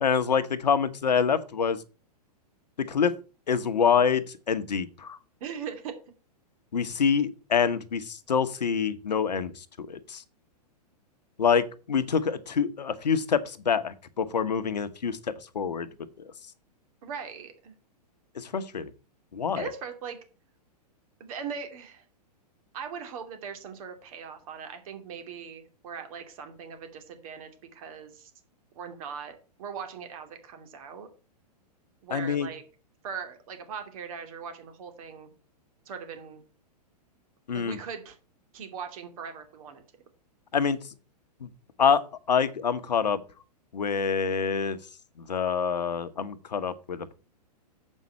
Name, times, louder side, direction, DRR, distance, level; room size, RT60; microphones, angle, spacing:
voice 1, 0.0-1.8 2.8-3.1 3.5-5.2 6.7-10.2 11.4-15.2 15.5-15.9 18.4-18.9 19.3-19.7 32.1-32.5 37.5-37.8 40.5-40.8 41.4-41.5 41.8-42.0 42.3-43.2 43.7-44.8 45.3-47.1, left 6 dB, 85° left, 1.0 m, -26 dB
voice 2, 5.4-5.9 17.0-17.8 19.6-20.2 21.2-22.0 22.7-28.3 28.7-31.1 32.0-32.6 33.0-35.3 35.9-36.4 37.5-38.2 38.5-39.8, right 6 dB, 55° right, 2.7 m, -40 dB
7.4 x 5.4 x 7.1 m
hypercardioid pair, 115°, 21 cm